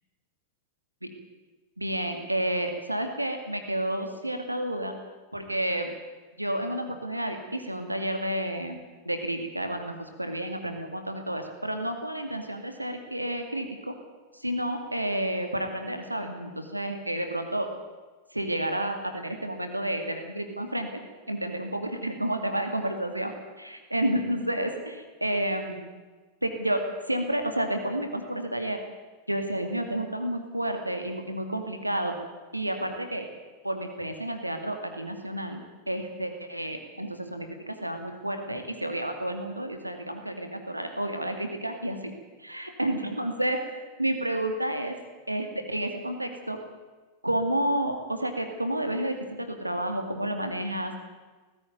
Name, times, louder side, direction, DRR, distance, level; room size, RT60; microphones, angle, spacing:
voice 1, 1.8-4.9 5.3-5.9 6.4-8.8 9.0-13.9 14.3-17.7 18.3-21.0 21.3-25.8 26.4-28.8 29.3-32.1 32.5-33.3 33.6-42.1 42.4-44.9 45.3-46.6 47.2-51.0, right 1 dB, 85° right, 6 dB, 2.3 m, -30 dB
18.5 x 15.5 x 9.4 m, 1.3 s
figure-of-eight pair, 90°, 0 cm